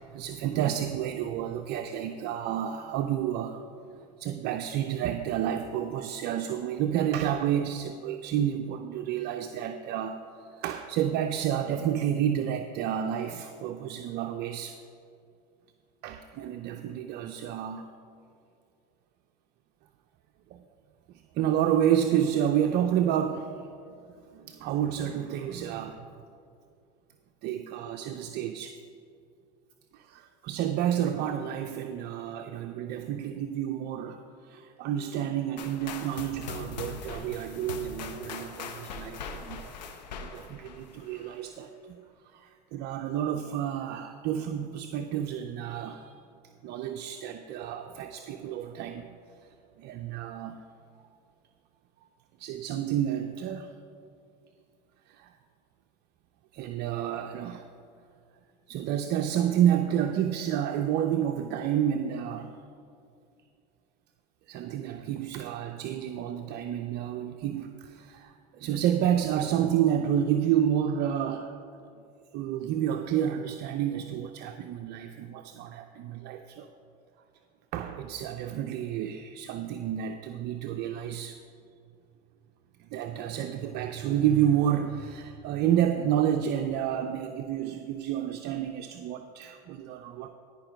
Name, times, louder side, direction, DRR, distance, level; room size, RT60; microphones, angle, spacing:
voice 1, 0.0-3.6 4.2-10.2 10.5-14.8 16.0-17.9 20.5-20.6 21.3-23.7 24.3-26.1 27.4-28.8 29.9-39.8 40.2-42.0 42.3-46.1 46.6-49.1 49.8-50.6 52.4-53.7 55.1-55.3 56.5-57.7 58.7-62.5 64.5-71.6 72.3-76.7 77.7-81.4 82.8-90.3, right 10 dB, 50° right, 6 dB, 0.6 m, -30 dB
sound 1, 35.6-41.4, left 5 dB, 90° left, 1.0 m, -41 dB
15.5 x 5.3 x 5.0 m, 2.5 s
hypercardioid pair, 90°, 21 cm